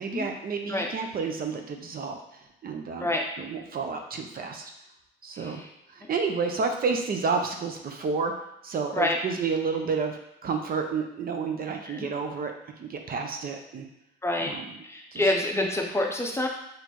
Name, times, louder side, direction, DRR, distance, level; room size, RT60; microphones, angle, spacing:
voice 1, 0.0-2.2 2.6-4.7 5.2-5.6 5.9-8.3 8.6-12.5 12.8-13.9 14.4-14.8 15.1-15.3, right 5 dB, 50° right, 4 dB, 0.6 m, -30 dB
voice 2, 14.2-14.5 14.8-16.5, left 1 dB, 15° left, 1 dB, 0.6 m, -27 dB
4.1 x 3.2 x 3.0 m, 0.86 s
cardioid pair, 90°, 20 cm